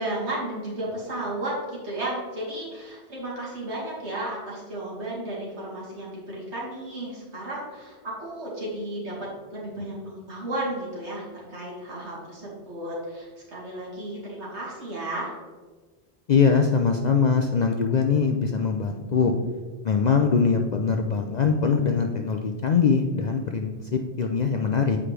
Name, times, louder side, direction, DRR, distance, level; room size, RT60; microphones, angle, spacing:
voice 1, 0.0-15.3, right 1 dB, 80° right, -5 dB, 2.3 m, -33 dB
voice 2, 16.3-19.3 19.8-25.0, left 5 dB, 60° left, 4 dB, 0.4 m, -22 dB
7.8 x 4.8 x 3.3 m, 1.4 s
omnidirectional pair, 1.2 m